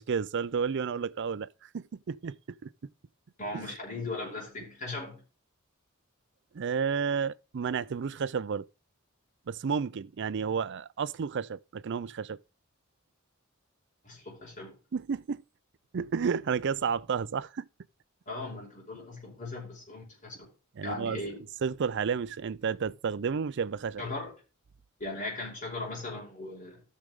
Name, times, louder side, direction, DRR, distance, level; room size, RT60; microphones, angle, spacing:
voice 1, 0.0-2.4 2.6-2.7 3.5-3.6 6.5-8.6 9.5-12.4 14.9-15.4 15.9-17.7 20.8-21.2 21.6-24.0, right 6 dB, 60° right, 0.4 m, -31 dB
voice 2, 3.4-5.2 14.0-14.7 18.3-20.5 20.8-21.4 24.0-24.3 25.0-26.8, left 2 dB, 40° left, 5.3 m, -38 dB
14.0 x 6.5 x 3.6 m
head